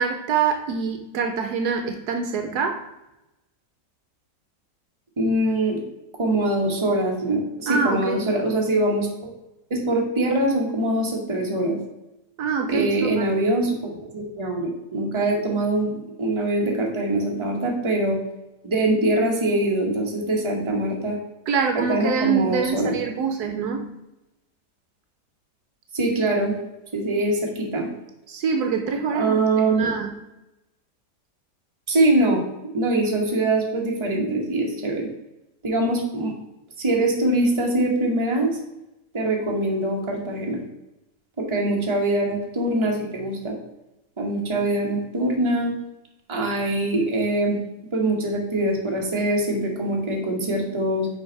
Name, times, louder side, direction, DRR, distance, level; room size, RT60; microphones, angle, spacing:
voice 1, 0.0-2.8 7.7-8.2 12.4-13.3 21.5-23.8 28.3-30.1, right 6 dB, 75° right, 5 dB, 1.1 m, -25 dB
voice 2, 5.2-5.8 6.2-9.3 9.7-11.8 12.7-18.2 18.6-21.2 21.7-23.0 25.9-26.5 26.9-27.9 29.1-29.9 31.9-32.4 32.7-35.1 35.6-36.3 36.8-38.6 39.1-40.6 41.4-43.6 44.2-45.7 46.3-47.6 47.9-51.1, right 1 dB, 20° right, 0 dB, 1.1 m, -23 dB
5.7 x 4.7 x 4.5 m, 0.93 s
omnidirectional pair, 1.8 m